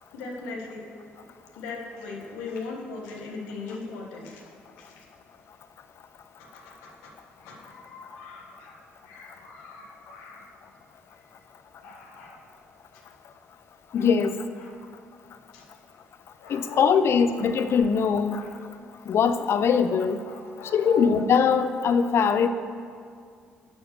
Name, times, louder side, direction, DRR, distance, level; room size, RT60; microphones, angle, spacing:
voice 1, 0.1-0.8 1.5-4.4 4.7-5.1 6.4-10.5 11.8-12.4 12.9-13.0 13.9-14.1 14.6-14.8 15.5-15.6 16.4-17.2 17.7-17.9 18.4-18.6 20.2-21.2, left 3 dB, 90° left, 0 dB, 1.4 m, -40 dB
voice 2, 13.9-14.4 16.5-18.4 19.1-20.2 20.7-22.5, left 6 dB, 60° left, 11 dB, 0.6 m, -21 dB
11.0 x 4.8 x 6.8 m, 2.2 s
supercardioid pair, 55°, 5 cm